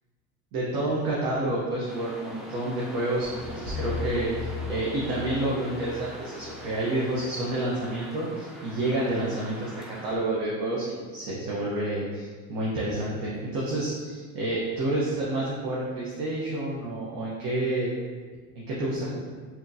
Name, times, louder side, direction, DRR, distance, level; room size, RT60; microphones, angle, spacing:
voice 1, 0.5-17.9 18.5-19.2, right 1 dB, 60° right, -6 dB, 0.9 m, -29 dB
sound 1, 1.9-10.2, equal, ahead, 0.4 m, -43 dB
sound 2, 3.2-7.3, left 5 dB, 20° left, 0.8 m, -37 dB
3.6 x 2.9 x 2.6 m, 1.5 s
supercardioid pair, 95°, 39 cm